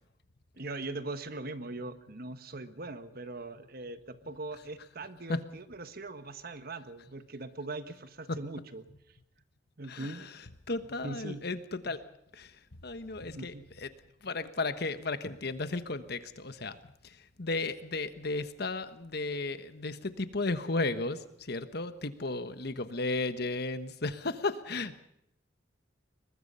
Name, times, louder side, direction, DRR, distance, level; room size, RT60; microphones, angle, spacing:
voice 1, 0.6-8.9 9.8-10.3 11.0-11.4 13.3-13.6, right 2 dB, 55° right, 11 dB, 1.4 m, -41 dB
voice 2, 9.9-10.3 10.7-12.0 12.3-12.5 12.8-13.9 14.2-16.8 17.0-25.0, left 3 dB, 60° left, 11 dB, 1.3 m, -34 dB
22.5 x 20.5 x 5.6 m, 0.79 s
head